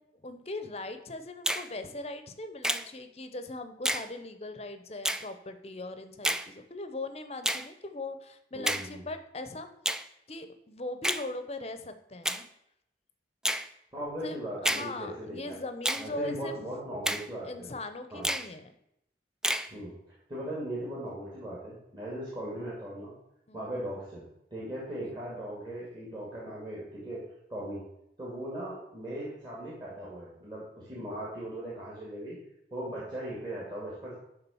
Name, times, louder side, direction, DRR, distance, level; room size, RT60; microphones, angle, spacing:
voice 1, 0.1-9.7 10.3-12.5 14.2-16.5 17.4-18.7 23.5-23.7 25.0-25.2, left 2 dB, 35° left, 9 dB, 0.8 m, -40 dB
Finger snapping, 1.5-1.7 2.6-2.9 3.9-4.1 5.0-5.3 6.2-6.5 7.4-7.7 8.7-8.9 9.9-10.1 11.0-11.3 12.2-12.4 13.4-13.7 14.6-14.9 15.8-16.1 17.1-17.3 18.2-18.5 19.4-19.7, right 1 dB, 5° right, 0.3 m, -29 dB
voice 2, 8.5-9.0 13.9-15.6 16.0-17.7 18.1-18.3 19.7-23.1 23.5-24.2 24.5-27.2 27.5-27.8 28.2-32.4 32.7-34.1, right 1 dB, 25° right, -7 dB, 2.4 m, -38 dB
11.0 x 3.9 x 7.1 m, 0.81 s
head